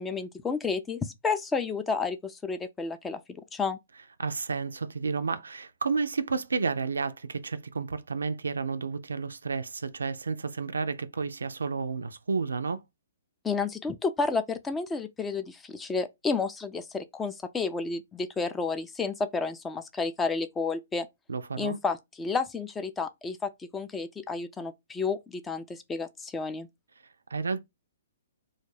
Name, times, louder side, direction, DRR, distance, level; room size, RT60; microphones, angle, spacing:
voice 1, 0.0-3.2 3.5-3.8 13.4-21.1 21.6-26.7, left 4 dB, 10° left, 0.3 m, -31 dB
voice 2, 4.2-12.8 21.3-21.8 27.3-27.6, right 4 dB, 80° right, 0.3 m, -31 dB
2.3 x 2.1 x 3.1 m
hypercardioid pair, 130°, 0 cm